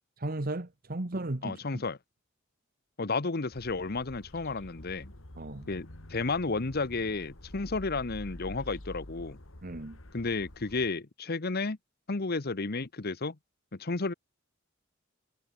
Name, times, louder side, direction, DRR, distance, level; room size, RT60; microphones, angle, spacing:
voice 1, 0.2-1.8 5.4-5.7 9.6-10.0, right 2 dB, 45° right, 1.4 m, -35 dB
voice 2, 1.4-2.0 3.0-5.1 5.7-9.4 10.1-11.8 12.1-13.4 13.7-14.1, left 3 dB, 50° left, 1.0 m, -32 dB
sound 1, 3.5-10.9, left 1 dB, 85° left, 2.9 m, -47 dB
head